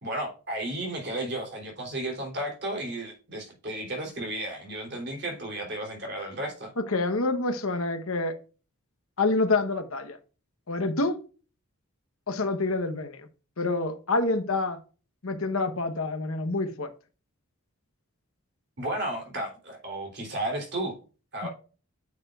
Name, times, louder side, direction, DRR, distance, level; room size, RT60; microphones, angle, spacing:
voice 1, 0.0-6.7 18.8-20.9 21.3-21.5, right 1 dB, 50° right, 3.2 m, -33 dB
voice 2, 6.8-8.3 9.2-10.2 10.7-11.2 12.3-13.3 13.6-14.8 15.2-16.9 21.4-21.5, left 3 dB, 70° left, 1.0 m, -27 dB
9.5 x 6.6 x 2.4 m
head